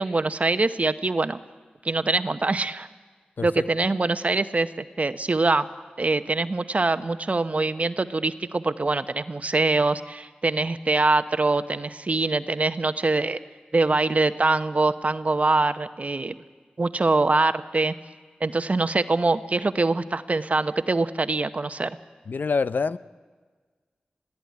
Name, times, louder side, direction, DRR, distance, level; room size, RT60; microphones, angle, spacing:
voice 1, 0.0-1.4 1.8-2.9 3.4-5.7 6.0-13.4 13.7-16.4 16.8-17.9 18.4-22.0, right 3 dB, 45° right, 11 dB, 0.9 m, -24 dB
voice 2, 22.3-23.0, left 4 dB, 75° left, 15 dB, 0.6 m, -25 dB
22.5 x 15.5 x 9.6 m, 1.5 s
cardioid pair, 50°, 3 cm